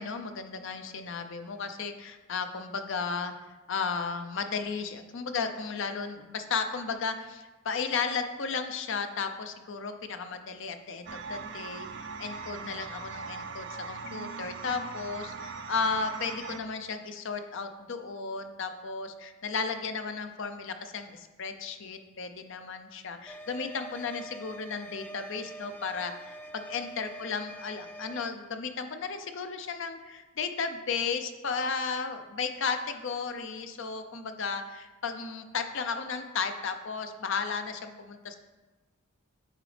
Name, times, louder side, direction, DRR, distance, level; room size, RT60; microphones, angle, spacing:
voice 1, 0.0-3.3 3.7-38.4, left 5 dB, 60° left, 7 dB, 0.6 m, -34 dB
sound 1, 11.1-16.6, right 4 dB, 55° right, 0.5 m, -40 dB
sound 2, 23.3-28.3, right 1 dB, 5° left, 0.4 m, -45 dB
8.9 x 4.9 x 3.3 m, 1.2 s
head